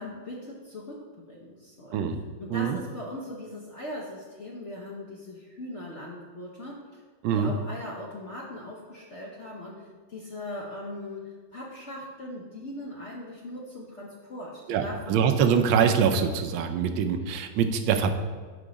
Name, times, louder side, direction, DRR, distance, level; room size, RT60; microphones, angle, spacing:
voice 1, 0.0-2.1 2.4-7.0 7.3-15.3, left 1 dB, 55° left, -3 dB, 0.8 m, -40 dB
voice 2, 14.7-18.1, right 7 dB, 80° right, 7 dB, 1.4 m, -24 dB
5.4 x 4.8 x 5.0 m, 1.5 s
omnidirectional pair, 2.1 m